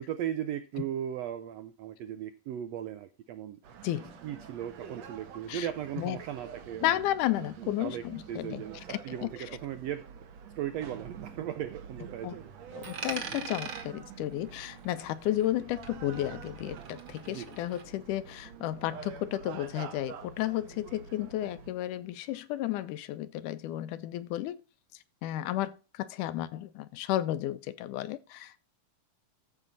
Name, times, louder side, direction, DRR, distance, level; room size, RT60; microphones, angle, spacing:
voice 1, 0.0-3.6 4.2-7.0 7.6-10.0 10.6-12.5 17.3-17.6, right 10 dB, 85° right, 1.4 m, -37 dB
sound 1, 3.6-21.7, right 7 dB, 65° right, 2.1 m, -47 dB
voice 2, 6.8-8.6 8.9-9.3 12.2-12.3 12.7-24.6 25.2-28.6, left 13 dB, 80° left, 2.2 m, -33 dB
Coin (dropping), 12.8-15.6 15.8-17.8, right 5 dB, 45° right, 2.0 m, -42 dB
14.0 x 5.6 x 4.0 m
omnidirectional pair, 3.7 m